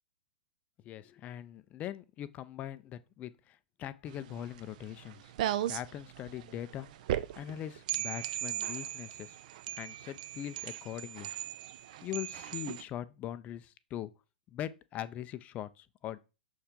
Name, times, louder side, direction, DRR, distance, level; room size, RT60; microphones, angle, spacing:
voice 1, 0.8-5.3 5.7-6.9 7.4-9.4 9.7-11.3 12.0-14.1 14.5-16.2, left 11 dB, 25° left, 0.5 m, -41 dB
sound 1, 4.1-12.8, right 12 dB, 50° right, 0.5 m, -38 dB
6.5 x 4.4 x 3.6 m
figure-of-eight pair, 105°, 5 cm